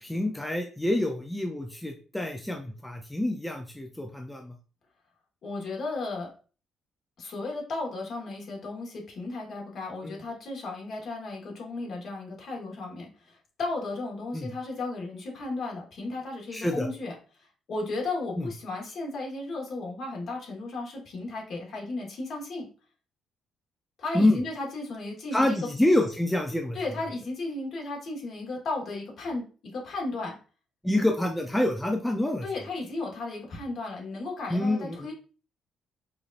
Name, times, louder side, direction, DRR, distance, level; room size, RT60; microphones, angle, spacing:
voice 1, 0.0-4.5 10.0-10.1 14.3-14.5 16.5-16.9 24.1-24.4 25.3-26.8 30.8-32.4 34.5-35.1, left 1 dB, 5° left, 3 dB, 0.5 m, -27 dB
voice 2, 5.4-6.3 7.2-22.7 24.0-25.7 26.7-29.4 29.7-30.4 32.4-35.1, left 2 dB, 55° left, -1 dB, 1.6 m, -35 dB
4.8 x 2.6 x 2.5 m, 0.37 s
cardioid pair, 110°, 0 cm